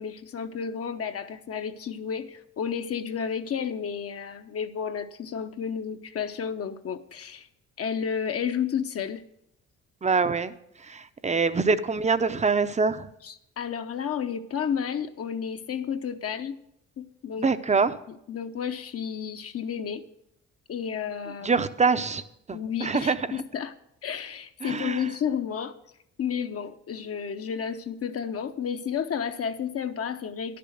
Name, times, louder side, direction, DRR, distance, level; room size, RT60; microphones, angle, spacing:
voice 1, 0.0-7.5 7.8-9.2 11.2-11.4 13.2-16.5 17.0-17.5 18.1-20.0 20.7-21.6 22.5-23.7 24.0-25.7 26.2-30.6, left 7 dB, 50° left, 8 dB, 0.8 m, -32 dB
voice 2, 10.0-10.5 10.9-13.1 17.4-17.9 21.4-22.2 22.5-23.2 24.6-25.1, right 4 dB, 25° right, 13 dB, 0.6 m, -24 dB
11.0 x 6.9 x 6.4 m, 0.76 s
cardioid pair, 90°, 30 cm